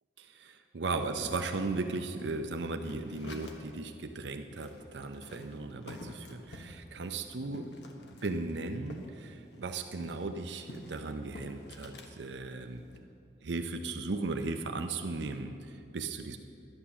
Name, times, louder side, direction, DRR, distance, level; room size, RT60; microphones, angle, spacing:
voice 1, 0.2-7.7 8.2-12.8 13.4-16.4, right 3 dB, 75° right, 6 dB, 0.6 m, -36 dB
sound 1, 1.0-3.8 4.1-4.2 4.5-9.1 9.4-12.1 12.6-13.0, left 1 dB, 75° left, 1.3 m, -49 dB
11.5 x 10.0 x 7.0 m, 2.6 s
head